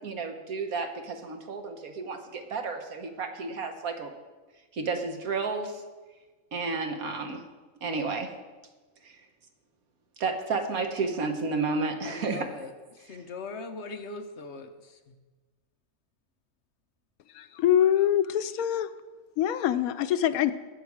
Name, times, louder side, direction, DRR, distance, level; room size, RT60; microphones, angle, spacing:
voice 1, 0.0-4.1 4.7-5.8 6.5-7.4 7.8-8.3 9.0-9.2 10.2-12.5, right 4 dB, 80° right, 5 dB, 1.7 m, -31 dB
voice 2, 12.0-15.2, left 3 dB, 55° left, 7 dB, 1.1 m, -41 dB
voice 3, 17.3-18.9 19.4-20.5, left 10 dB, 85° left, 12 dB, 1.1 m, -24 dB
19.5 x 6.9 x 4.9 m, 1.3 s
omnidirectional pair, 1.5 m